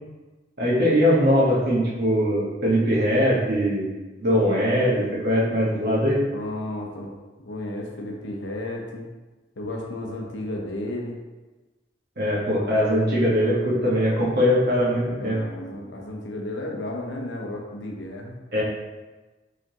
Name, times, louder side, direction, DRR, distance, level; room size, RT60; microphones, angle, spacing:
voice 1, 0.6-3.9 4.2-6.2 12.2-15.4 18.5-18.6, equal, 60° right, -6 dB, 1.3 m, -21 dB
voice 2, 6.3-7.1 7.4-9.1 9.6-11.2 15.2-18.4, left 1 dB, 85° left, 0 dB, 0.8 m, -33 dB
4.9 x 3.5 x 2.9 m, 1.2 s
head